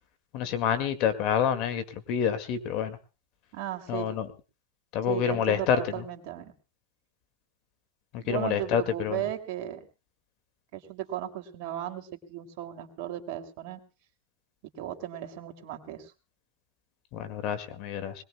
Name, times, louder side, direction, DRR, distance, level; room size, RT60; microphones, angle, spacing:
voice 1, 0.3-3.0 3.9-4.3 4.9-5.8 8.1-9.2 17.1-18.1, left 8 dB, 55° left, 10 dB, 2.0 m, -28 dB
voice 2, 3.5-4.1 5.0-6.5 8.2-9.9 10.7-13.8 14.8-16.1, right 12 dB, 60° right, 4 dB, 2.6 m, -36 dB
21.0 x 20.5 x 2.3 m, 0.33 s
hypercardioid pair, 100°, 0 cm